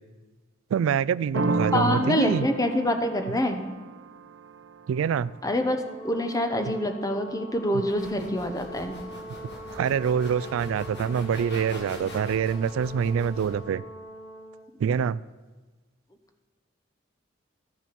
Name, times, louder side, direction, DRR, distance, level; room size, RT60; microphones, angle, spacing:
voice 1, 0.7-2.5 4.9-5.3 7.7-7.8 9.7-13.8 14.8-15.2, right 7 dB, 85° right, 21 dB, 0.3 m, -25 dB
sound 1, 1.3-6.9, right 3 dB, 70° right, 0.7 m, -33 dB
voice 2, 1.7-3.7 5.4-5.8 6.0-8.9, left 1 dB, 20° left, 6 dB, 0.9 m, -26 dB
Brass instrument, 5.7-14.7, right 1 dB, 35° left, 2.4 m, -43 dB
sound 2, 7.9-13.6, left 1 dB, 60° left, 2.2 m, -42 dB
13.5 x 6.9 x 6.0 m, 1.3 s
head